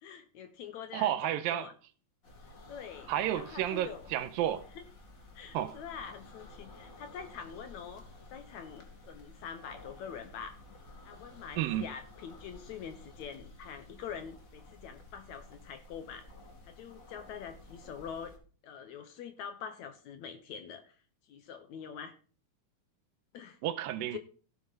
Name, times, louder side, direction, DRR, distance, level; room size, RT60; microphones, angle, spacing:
voice 1, 0.0-1.7 2.7-4.1 4.8-4.9 5.3-8.0 8.3-10.6 11.1-16.3 16.7-18.3 18.6-21.0 21.3-22.2 23.3-23.6 24.1-24.2, left 7 dB, 65° left, 2.0 m, -45 dB
voice 2, 0.9-1.7 3.1-4.6 5.5-5.8 11.6-11.9 23.6-24.2, right 12 dB, 85° right, 2.6 m, -31 dB
sound 1, 2.2-18.4, left 2 dB, 30° left, 1.6 m, -53 dB
15.5 x 8.0 x 4.0 m
omnidirectional pair, 4.0 m